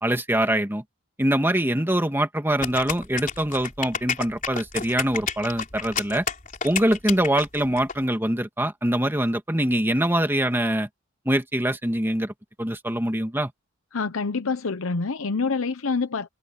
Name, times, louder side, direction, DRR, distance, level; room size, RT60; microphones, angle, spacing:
voice 1, 0.0-0.8 1.2-6.2 6.6-10.9 11.3-12.3 12.6-13.5, right 1 dB, 10° right, 2.2 m, -24 dB
sound 1, 2.6-7.9, left 6 dB, 40° left, 3.6 m, -30 dB
voice 2, 13.9-16.3, left 4 dB, 85° left, 0.9 m, -26 dB
head